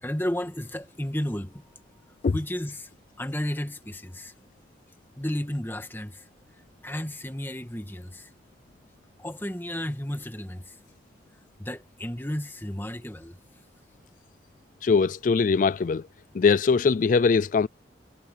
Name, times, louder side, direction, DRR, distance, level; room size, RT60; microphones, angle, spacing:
voice 1, 0.0-1.6 2.3-2.9 3.2-4.3 5.2-6.3 6.8-8.3 9.2-10.8 11.6-13.4, left 1 dB, 10° left, 1.9 m, -32 dB
voice 2, 14.8-16.0 16.3-17.7, left 5 dB, 45° left, 0.3 m, -21 dB
head